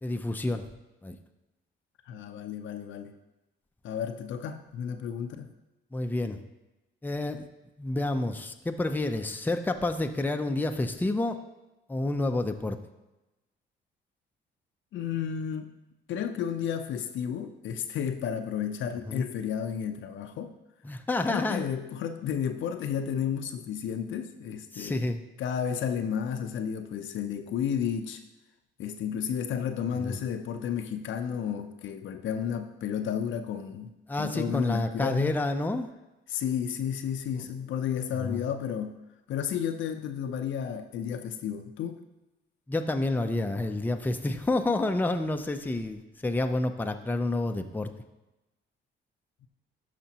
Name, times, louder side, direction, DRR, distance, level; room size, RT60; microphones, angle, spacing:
voice 1, 0.0-0.6 1.0-1.2 5.9-6.4 7.0-7.5 7.8-11.4 11.9-12.8 19.1-19.3 20.8-21.7 24.7-25.2 30.0-30.2 34.1-35.9 38.2-38.4 42.7-47.9, left 2 dB, 10° left, 6 dB, 0.6 m, -29 dB
voice 2, 2.1-3.1 3.8-5.5 14.9-15.7 16.1-20.5 21.3-25.1 25.4-28.2 28.8-33.9 34.2-35.4 36.3-39.0 39.3-42.0, left 8 dB, 75° left, 7 dB, 0.6 m, -32 dB
12.0 x 5.1 x 2.9 m, 1.0 s
cardioid pair, 90°, 20 cm